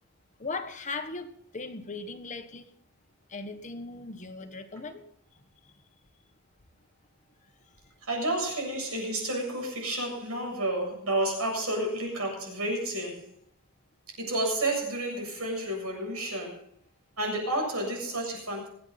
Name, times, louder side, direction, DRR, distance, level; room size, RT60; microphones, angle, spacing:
voice 1, 0.4-2.7 3.3-5.0, left 3 dB, 35° left, 1.3 m, -38 dB
voice 2, 8.1-13.3 14.2-16.6 17.2-18.7, right 1 dB, 80° right, 7.8 m, -30 dB
26.5 x 9.4 x 4.1 m
head